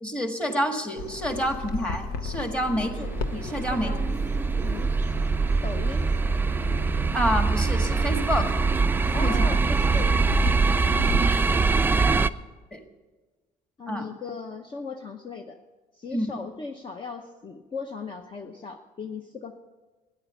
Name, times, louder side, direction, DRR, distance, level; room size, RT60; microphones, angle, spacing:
voice 1, 0.0-3.0 3.3-3.9 7.1-8.6 9.2-9.5 12.7-12.8 13.9-14.1 16.1-16.4, equal, 5° left, 5 dB, 1.7 m, -28 dB
Bird vocalization bird call bird song, 1.0-11.2, left 4 dB, 90° left, 1.0 m, -36 dB
sound 1, 2.6-12.3, right 4 dB, 15° right, 0.4 m, -23 dB
voice 2, 3.7-4.2 4.6-5.3 5.6-6.1 9.1-10.2 10.5-11.6 12.1-12.2 13.8-15.6 15.9-19.6, left 4 dB, 30° left, 5 dB, 0.8 m, -38 dB
13.0 x 10.0 x 7.1 m, 1.2 s
cardioid pair, 115°, 15 cm